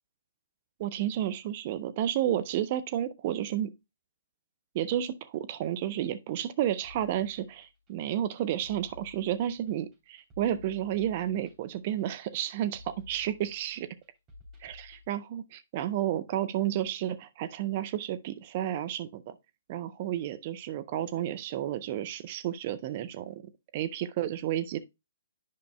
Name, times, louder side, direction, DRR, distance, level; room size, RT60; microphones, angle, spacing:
voice 1, 0.8-3.7 4.7-13.9 14.6-19.4 19.7-23.4 23.7-24.8, right 11 dB, 40° right, 0.6 m, -31 dB
sound 1, 6.8-15.1, left 3 dB, 20° right, 3.2 m, -54 dB
10.5 x 5.3 x 2.2 m
figure-of-eight pair, 130°, 0 cm